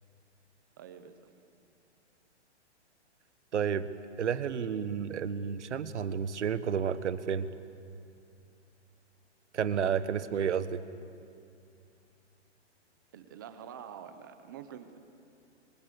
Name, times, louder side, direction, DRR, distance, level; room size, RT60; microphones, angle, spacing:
voice 1, 0.8-1.3 10.2-10.3 13.1-15.0, right 8 dB, 15° right, 10 dB, 0.7 m, -47 dB
voice 2, 3.5-3.9 4.2-7.5 9.5-10.8, right 7 dB, 75° right, 13 dB, 1.4 m, -31 dB
29.0 x 25.5 x 6.9 m, 2.5 s
hypercardioid pair, 175°, 35 cm